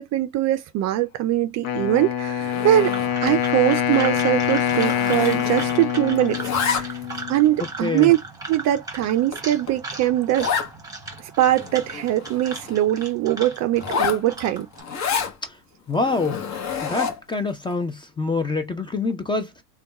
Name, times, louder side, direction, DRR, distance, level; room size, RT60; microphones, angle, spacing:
voice 1, 0.0-2.9 3.2-6.8 7.3-8.2 8.5-10.5 11.4-14.7, right 13 dB, 40° right, 0.5 m, -22 dB
Wind instrument woodwind instrument, 1.6-7.6, left 9 dB, 60° left, 0.9 m, -25 dB
Zipper (clothing), 2.4-3.4 3.7-3.9 4.2-5.9 6.2-7.2 7.8-7.9 8.5-8.6 9.0-9.1 9.3-9.4 9.7-9.8 10.4-10.7 11.2-11.3 11.5-12.8 13.7-15.3 15.9-17.3, left 6 dB, 35° left, 1.1 m, -29 dB
sound 1, 2.4-14.8, right 3 dB, 10° right, 1.5 m, -38 dB
voice 2, 7.8-8.1 15.4-15.6 15.9-16.4 16.8-19.6, left 3 dB, 10° left, 0.5 m, -26 dB
3.4 x 2.4 x 4.0 m
hypercardioid pair, 95°, 47 cm